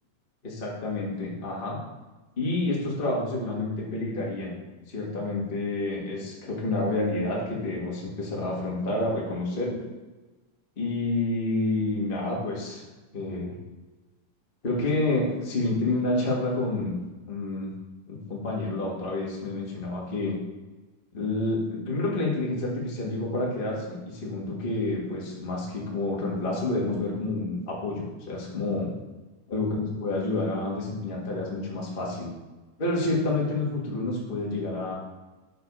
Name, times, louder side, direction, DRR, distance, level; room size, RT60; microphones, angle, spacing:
voice 1, 0.4-1.8 2.4-4.6 4.9-9.8 10.8-12.8 13.1-13.5 14.6-17.0 17.3-17.7 18.1-20.4 21.1-28.9 29.5-32.3 32.8-34.9, left 2 dB, 70° left, -4 dB, 0.5 m, -29 dB
6.4 x 4.8 x 5.4 m, 1.2 s
omnidirectional pair, 4.1 m